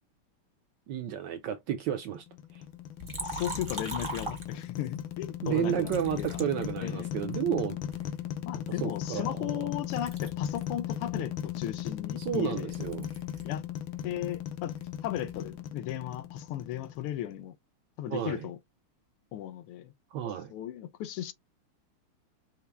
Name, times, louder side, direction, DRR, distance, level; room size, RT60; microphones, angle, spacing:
voice 1, 0.9-2.3 2.5-2.6 5.4-7.8 8.8-9.7 12.2-13.1 18.1-18.5 20.1-20.5, right 10 dB, 75° right, 1.1 m, -32 dB
sound 1, 2.1-17.3, left 10 dB, 70° left, 1.4 m, -37 dB
Liquid, 3.0-5.0 5.8-7.3 7.9-9.7 9.9-13.6 13.9-15.5, right 1 dB, 45° right, 0.4 m, -42 dB
voice 2, 3.2-6.4 6.8-7.1 8.4-12.7 13.4-13.6 14.0-14.7 15.0-17.6 18.0-18.6 19.3-19.9 20.5-21.3, left 11 dB, 85° left, 1.6 m, -36 dB
5.8 x 2.1 x 3.4 m
omnidirectional pair, 2.4 m